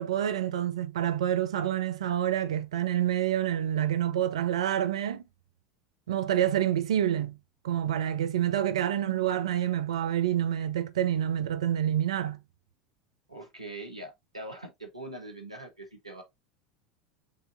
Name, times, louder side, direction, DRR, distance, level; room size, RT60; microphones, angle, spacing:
voice 1, 0.0-5.2 6.1-7.4 7.6-12.4, right 11 dB, 65° right, 0.4 m, -27 dB
voice 2, 13.3-16.2, right 2 dB, 90° right, 1.0 m, -42 dB
6.6 x 2.6 x 2.5 m
figure-of-eight pair, 75°, 3 cm